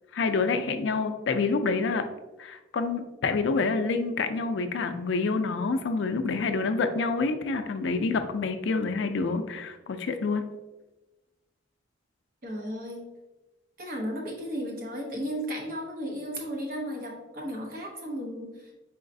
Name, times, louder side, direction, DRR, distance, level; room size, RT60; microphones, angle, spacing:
voice 1, 0.1-2.0 2.4-10.4, left 4 dB, 70° left, 8 dB, 0.4 m, -27 dB
voice 2, 12.4-13.1 13.8-18.7, equal, 50° right, 0 dB, 0.9 m, -34 dB
4.2 x 3.9 x 2.6 m, 1.1 s
head